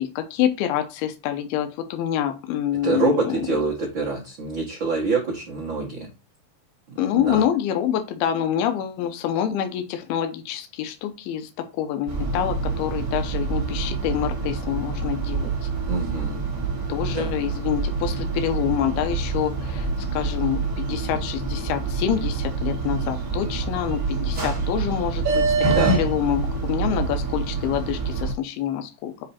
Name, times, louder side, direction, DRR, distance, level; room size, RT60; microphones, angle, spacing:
voice 1, 0.0-3.5 7.0-11.5 11.8-15.7 16.9-25.5 25.9-29.1, left 10 dB, 75° left, 7 dB, 2.7 m, -26 dB
voice 2, 2.8-6.1 6.9-7.4 15.9-16.4 17.1-17.4 25.7-26.0, right 3 dB, 80° right, -4 dB, 1.0 m, -26 dB
sound 1, 12.1-28.3, right 4 dB, 40° right, 2.1 m, -26 dB
7.7 x 3.3 x 4.2 m, 0.27 s
omnidirectional pair, 4.7 m